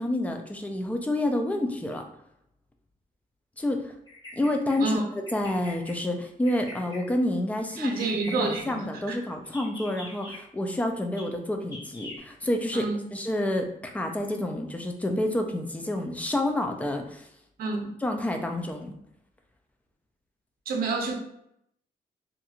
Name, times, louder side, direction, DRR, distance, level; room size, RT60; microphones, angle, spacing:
voice 1, 0.0-2.0 3.6-3.9 4.3-17.3 18.0-18.9, left 1 dB, 10° left, 0.3 m, -29 dB
Bird vocalization bird call bird song, 4.1-4.8 5.3-5.9 6.4-7.0 7.7-8.7 9.4-10.4 11.2-11.3 11.7-12.2, left 1 dB, 25° left, 0.9 m, -43 dB
voice 2, 7.8-8.8 12.7-13.0 17.6-17.9 20.7-21.2, right 3 dB, 75° right, 0.6 m, -28 dB
2.9 x 2.5 x 2.3 m
cardioid pair, 135°, 15 cm